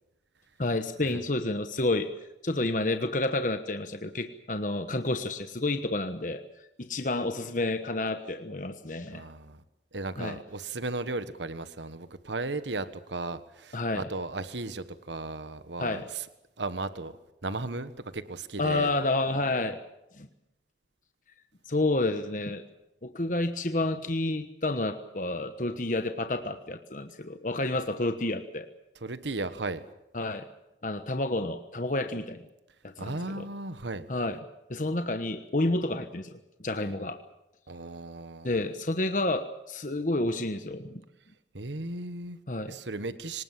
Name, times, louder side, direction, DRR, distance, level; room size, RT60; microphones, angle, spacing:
voice 1, 0.6-2.1 2.4-6.4 6.8-9.2 10.2-10.4 13.7-14.0 15.8-16.0 18.6-19.8 20.1-20.3 21.7-22.6 23.0-28.7 30.1-30.5 30.8-32.4 32.8-33.5 34.1-34.4 34.7-37.2 38.4-41.0 42.5-42.7, left 2 dB, 45° left, 8 dB, 1.2 m, -30 dB
voice 2, 9.1-9.6 9.9-16.2 16.6-17.1 17.4-18.9 29.0-29.8 33.0-34.1 37.7-38.5 41.5-42.4 42.7-43.4, right 2 dB, 85° right, 12 dB, 1.4 m, -35 dB
25.5 x 19.5 x 7.5 m, 0.90 s
head